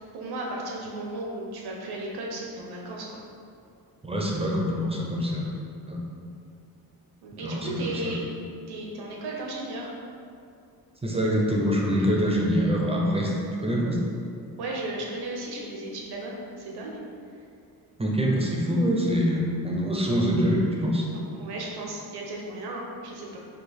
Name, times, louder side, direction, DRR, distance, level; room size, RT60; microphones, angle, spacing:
voice 1, 0.1-3.2 7.2-8.2 8.7-9.9 14.6-17.0 21.1-23.4, right 2 dB, 85° right, -2 dB, 0.9 m, -35 dB
voice 2, 4.0-5.5 5.9-6.0 7.4-8.1 11.0-13.3 13.6-14.0 18.0-21.0, equal, 15° right, -2 dB, 0.4 m, -25 dB
4.8 x 2.5 x 4.1 m, 2.4 s
wide cardioid pair, 175°, 38 cm